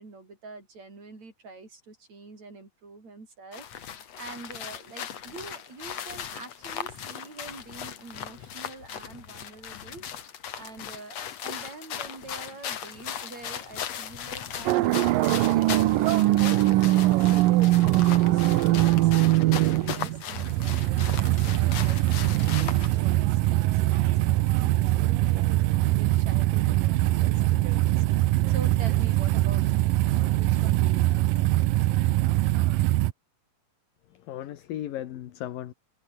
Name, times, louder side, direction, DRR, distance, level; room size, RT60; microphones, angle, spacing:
voice 1, 0.0-15.1 15.4-30.0 30.4-31.5, right 3 dB, 45° right, 7.8 m, -46 dB
sound 1, 3.5-23.0, left 9 dB, 50° left, 2.6 m, -38 dB
sound 2, 14.7-33.1, right 17 dB, 75° right, 2.3 m, -22 dB
voice 2, 34.1-35.7, left 12 dB, 70° left, 3.1 m, -36 dB
omnidirectional pair, 4.3 m